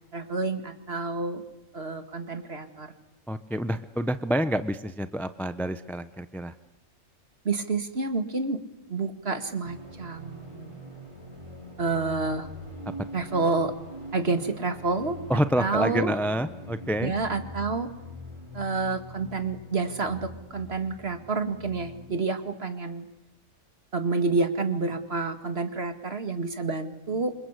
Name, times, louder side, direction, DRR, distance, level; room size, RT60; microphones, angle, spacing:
voice 1, 0.1-1.4 1.7-2.9 7.4-8.6 8.9-10.8 11.8-12.5 13.1-13.7 14.1-15.2 15.6-16.2 17.0-17.9 18.5-23.1 23.9-27.4, right 3 dB, 50° right, 8 dB, 2.3 m, -29 dB
voice 2, 3.3-6.5 15.3-17.1, equal, ahead, 11 dB, 0.7 m, -28 dB
sound 1, 9.6-22.1, equal, 20° right, 5.7 m, -43 dB
27.5 x 25.5 x 8.3 m, 0.90 s
omnidirectional pair, 1.4 m